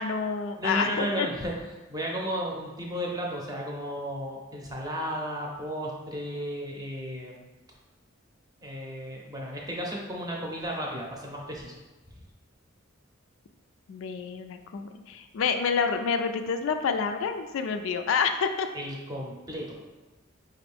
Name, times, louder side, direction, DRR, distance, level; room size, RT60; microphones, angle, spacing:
voice 1, 0.0-1.3 13.9-18.7, left 5 dB, 75° left, 7 dB, 0.3 m, -28 dB
voice 2, 0.6-1.5 1.9-7.4 8.6-11.8 18.7-19.8, equal, 20° right, -2 dB, 0.7 m, -34 dB
4.9 x 2.5 x 3.4 m, 1.1 s
head